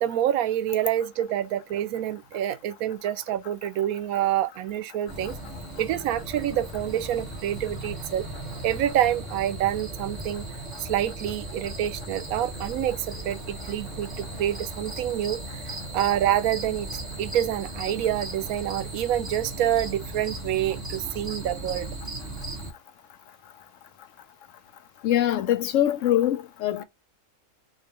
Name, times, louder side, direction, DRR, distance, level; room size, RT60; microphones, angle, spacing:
voice 1, 0.0-5.4 5.8-8.3 8.6-10.4 10.8-15.6 15.9-16.9 17.2-21.9, right 11 dB, 85° right, 1.0 m, -27 dB
sound 1, 5.1-22.7, right 2 dB, 25° right, 1.8 m, -37 dB
voice 2, 25.0-26.8, left 12 dB, 70° left, 0.9 m, -23 dB
6.6 x 2.4 x 2.8 m
omnidirectional pair, 1.5 m